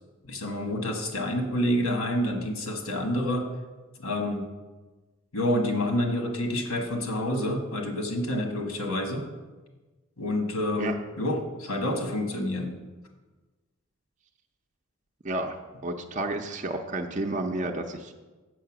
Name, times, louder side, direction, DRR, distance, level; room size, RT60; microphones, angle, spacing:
voice 1, 0.2-3.5 4.0-4.5 5.3-9.3 10.2-12.7, left 1 dB, 85° left, 4 dB, 1.5 m, -28 dB
voice 2, 15.2-15.5 15.8-18.1, right 2 dB, 35° right, 3 dB, 0.6 m, -31 dB
7.1 x 6.5 x 6.0 m, 1.2 s
head